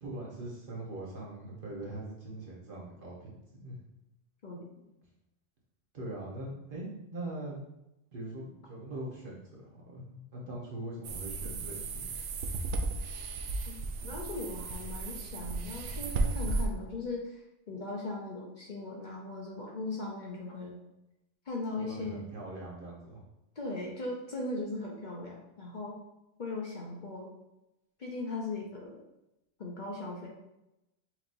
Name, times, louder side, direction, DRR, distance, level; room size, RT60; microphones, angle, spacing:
voice 1, 0.0-3.8 5.9-7.6 8.1-12.1 21.8-23.2, right 1 dB, 50° right, -3 dB, 1.1 m, -42 dB
voice 2, 4.4-4.7 13.7-20.8 21.5-22.3 23.6-26.0 26.4-27.3 28.0-29.0 29.6-30.3, left 2 dB, 45° left, -2 dB, 0.8 m, -38 dB
sound 1, 11.0-16.7, right 3 dB, 85° right, 0.9 m, -34 dB
5.9 x 2.9 x 2.5 m, 0.89 s
omnidirectional pair, 1.2 m